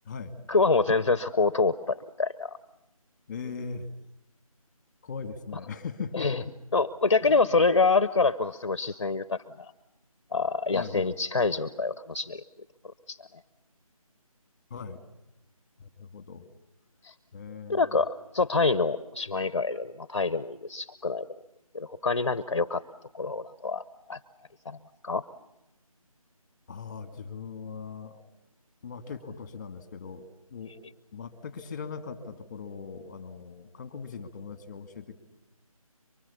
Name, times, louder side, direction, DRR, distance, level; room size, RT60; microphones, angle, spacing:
voice 1, 0.5-2.6 6.1-6.4 6.7-9.7 10.3-12.4 13.1-13.2 17.0-17.1 17.7-21.3 21.7-22.8 23.1-23.8 24.1-24.2 24.6-24.8 25.0-25.2, left 4 dB, 50° left, 14 dB, 0.9 m, -26 dB
voice 2, 3.3-3.9 5.0-6.6 7.2-7.5 10.7-11.2 14.7-15.0 15.8-16.5 17.3-18.0 26.7-28.2 28.8-30.8 31.1-35.2, left 5 dB, 15° left, 9 dB, 2.0 m, -39 dB
24.5 x 24.5 x 7.1 m, 0.91 s
figure-of-eight pair, 170°, 19 cm